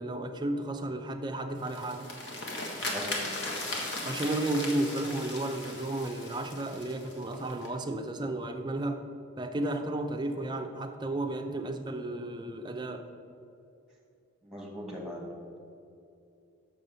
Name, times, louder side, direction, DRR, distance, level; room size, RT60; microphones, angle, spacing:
voice 1, 0.0-2.1 4.0-9.0 9.4-13.1, right 1 dB, 20° right, 5 dB, 0.5 m, -33 dB
sound 1, 1.6-7.7, left 2 dB, 60° left, 1.4 m, -37 dB
voice 2, 2.8-3.3 14.4-15.6, left 1 dB, 5° right, -2 dB, 1.3 m, -40 dB
6.2 x 5.4 x 6.7 m, 2.6 s
head